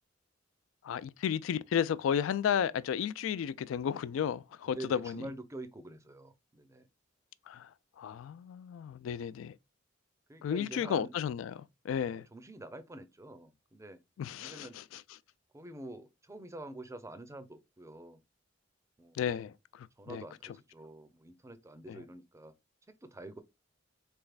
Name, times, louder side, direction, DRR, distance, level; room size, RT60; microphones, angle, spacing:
voice 1, 0.8-5.2 7.5-7.7 8.0-9.5 10.4-12.3 14.2-15.0 19.2-20.2 21.9-22.0, left 8 dB, 85° left, 0.3 m, -33 dB
voice 2, 4.6-6.9 10.3-11.1 12.1-14.0 14.4-14.8 15.5-18.2 19.0-19.2 20.0-22.5 23.0-23.4, right 1 dB, 15° right, 0.5 m, -47 dB
4.0 x 3.4 x 2.3 m
head